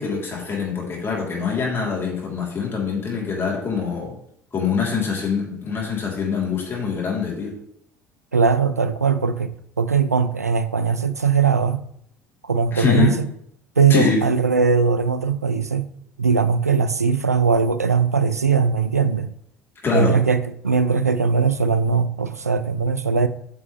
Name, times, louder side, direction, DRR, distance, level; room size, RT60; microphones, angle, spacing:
voice 1, 0.0-4.2 4.5-7.6 12.7-13.2 13.9-14.2 19.8-20.2, left 5 dB, 30° left, 3.5 m, -24 dB
voice 2, 8.3-11.8 12.4-13.3 13.8-15.9 16.2-19.3 19.9-23.3, right 5 dB, 90° right, 0.4 m, -20 dB
9.4 x 6.2 x 3.3 m
figure-of-eight pair, 60°, 8 cm